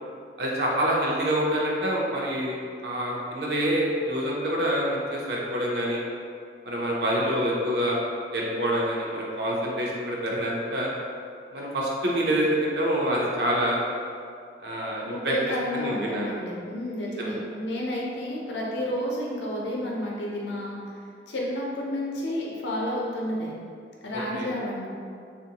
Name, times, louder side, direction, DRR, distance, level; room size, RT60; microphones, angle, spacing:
voice 1, 0.4-2.6 2.8-6.0 6.6-8.0 8.3-10.9 11.5-13.8 14.6-15.3 15.7-16.4 17.2-17.3 24.1-24.5, equal, 65° right, -4 dB, 0.6 m, -26 dB
voice 2, 15.0-20.8 21.3-23.5 24.0-24.9, left 1 dB, 90° left, -3 dB, 0.7 m, -31 dB
3.7 x 2.5 x 2.8 m, 2.3 s
head